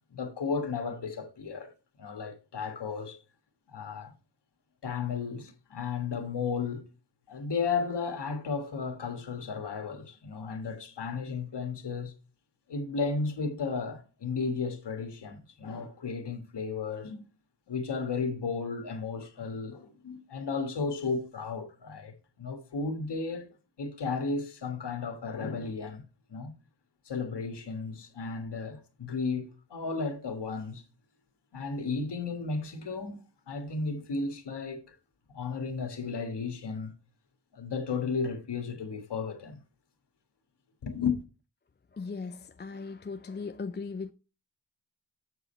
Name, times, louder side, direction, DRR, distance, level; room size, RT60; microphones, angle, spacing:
voice 1, 0.1-1.7 2.0-3.2 3.7-4.1 4.8-6.8 7.3-12.1 12.7-17.2 17.7-23.5 23.8-26.0 26.3-26.5 27.0-30.8 31.5-33.2 33.5-35.0 35.3-36.9 37.5-39.6 40.8-41.2, left 4 dB, 80° left, 1.5 m, -34 dB
voice 2, 41.9-44.1, left 4 dB, 25° left, 0.5 m, -38 dB
7.9 x 4.9 x 4.3 m
cardioid pair, 55°, 40 cm